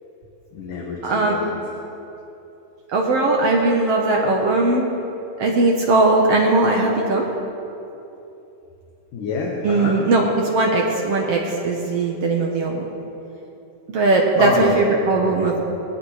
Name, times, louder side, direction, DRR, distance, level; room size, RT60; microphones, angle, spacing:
voice 1, 0.5-1.5 8.2-8.3 9.1-10.0 14.4-15.5, left 3 dB, 60° left, -2 dB, 2.7 m, -28 dB
voice 2, 1.0-1.4 2.9-4.9 5.4-7.3 9.6-12.9 13.9-15.6, right 2 dB, 70° right, 0 dB, 1.5 m, -19 dB
19.0 x 15.5 x 5.0 m, 2.9 s
omnidirectional pair, 4.6 m